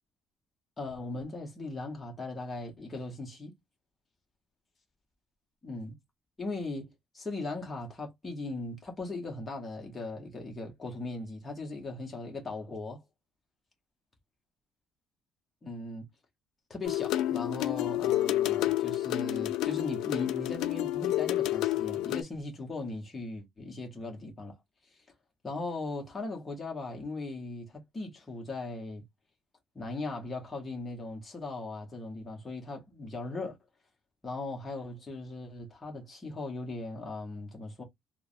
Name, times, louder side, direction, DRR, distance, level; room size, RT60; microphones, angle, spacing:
voice 1, 0.8-3.5 5.6-6.0 6.4-13.0 15.6-16.1 16.7-24.5 25.4-29.0 29.7-33.6 34.2-37.8, left 2 dB, 15° left, 1.0 m, -38 dB
sound 1, 16.8-22.2, left 14 dB, 90° left, 0.4 m, -29 dB
3.3 x 2.0 x 2.4 m
cardioid pair, 180°, 0 cm